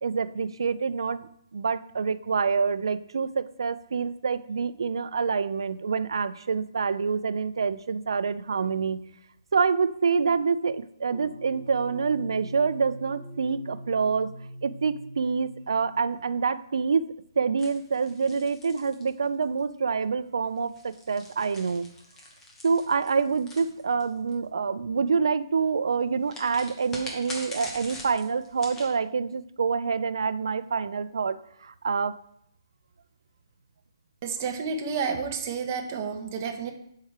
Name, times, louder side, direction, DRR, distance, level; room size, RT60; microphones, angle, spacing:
voice 1, 0.0-9.0 9.5-14.3 14.6-17.1 17.4-21.9 22.6-32.2, right 5 dB, 80° right, 15 dB, 0.4 m, -27 dB
sound 1, 11.1-16.3, equal, 75° left, 1.6 m, -42 dB
sound 2, 17.6-19.6 20.6-24.3 26.3-28.9, left 1 dB, 10° left, 0.9 m, -43 dB
voice 2, 34.2-36.7, right 5 dB, 30° right, 5 dB, 0.8 m, -30 dB
6.5 x 4.7 x 4.3 m, 0.72 s
hypercardioid pair, 170°, 3 cm